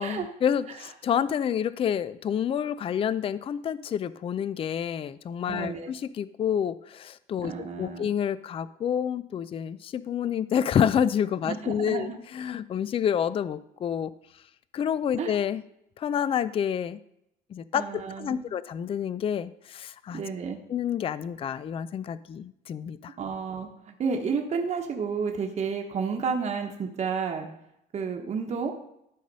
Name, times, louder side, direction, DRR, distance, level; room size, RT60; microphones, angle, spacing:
voice 1, 0.0-7.5 7.8-14.1 14.7-15.6 16.0-17.0 17.5-20.2 20.7-23.1, left 8 dB, 35° left, 16 dB, 0.4 m, -28 dB
voice 2, 5.5-5.9 7.4-8.1 11.5-12.2 15.2-15.4 17.7-18.4 20.1-20.6 23.2-27.5 27.9-28.7, right 5 dB, 40° right, 2 dB, 1.1 m, -31 dB
11.5 x 4.0 x 5.4 m, 0.80 s
cardioid pair, 110°, 17 cm